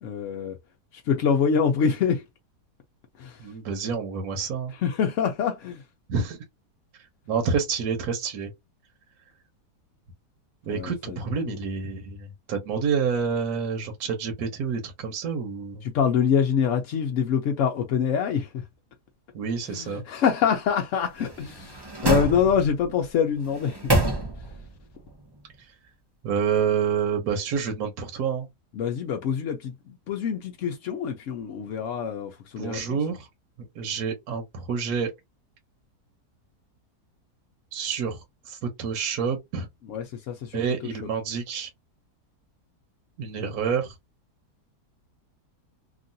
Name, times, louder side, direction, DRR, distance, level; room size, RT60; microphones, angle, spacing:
voice 1, 0.0-0.6 1.1-2.2 3.2-3.4 4.8-5.8 10.7-11.2 11.5-11.6 15.8-18.6 19.7-23.9 28.7-33.0 39.9-40.6, left 7 dB, 65° left, 0.8 m, -25 dB
voice 2, 3.4-4.7 6.1-6.4 7.3-8.5 10.7-15.8 19.3-20.0 26.2-28.5 32.6-33.3 33.8-35.1 37.7-38.2 38.5-39.7 40.5-41.7 43.2-43.9, right 6 dB, 70° right, 1.2 m, -28 dB
sound 1, 21.2-22.9 23.4-24.7 25.1-25.2, right 1 dB, 35° right, 0.4 m, -27 dB
3.0 x 2.4 x 2.6 m
omnidirectional pair, 1.7 m